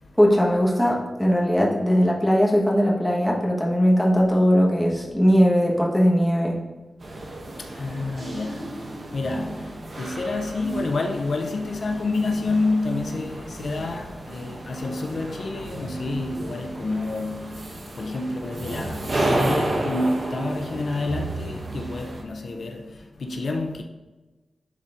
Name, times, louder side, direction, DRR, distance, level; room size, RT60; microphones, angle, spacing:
voice 1, 0.2-6.6, equal, 5° left, 1.3 m, -19 dB
sound 1, 7.0-22.2, right 1 dB, 50° right, 1.1 m, -32 dB
voice 2, 7.6-23.8, left 2 dB, 65° left, 0.5 m, -29 dB
10.5 x 4.2 x 2.6 m
wide cardioid pair, 115°, 0 cm